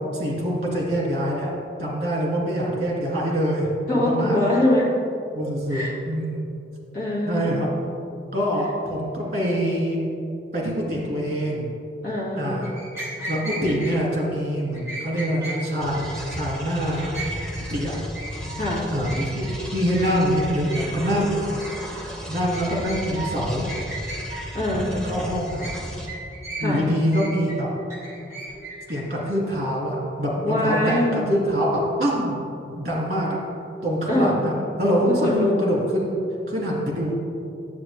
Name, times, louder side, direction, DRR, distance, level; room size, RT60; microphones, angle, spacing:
voice 1, 0.1-1.5 1.8-4.4 5.3-5.8 6.1-6.4 7.3-7.7 8.3-10.0 10.5-11.7 12.4-12.7 13.3-17.2 17.7-18.0 18.9-21.3 22.3-23.7 24.7-25.7 26.6-27.7 28.9-33.4 33.8-34.5 34.8-36.2 36.5-37.1, equal, 40° right, -3 dB, 2.1 m, -25 dB
voice 2, 3.9-4.9 5.7-5.9 6.9-7.5 12.0-12.6 18.6-18.9 24.5-25.0 26.6-26.8 30.4-31.2 34.1-34.4 35.0-35.6, left 1 dB, 50° left, -6 dB, 2.1 m, -23 dB
sound 1, 12.6-14.0 14.7-15.6 15.9-16.4 16.8-17.7 17.9-18.6 19.0-19.6 19.9-20.1 20.4-21.1 21.4-22.0 22.5-23.3 23.7-24.4 25.0-25.8 26.1-26.8 27.1-29.0, right 2 dB, 15° right, 1.9 m, -36 dB
sound 2, 15.8-26.1, equal, 5° left, 1.0 m, -35 dB
9.5 x 7.6 x 3.3 m, 2.7 s
head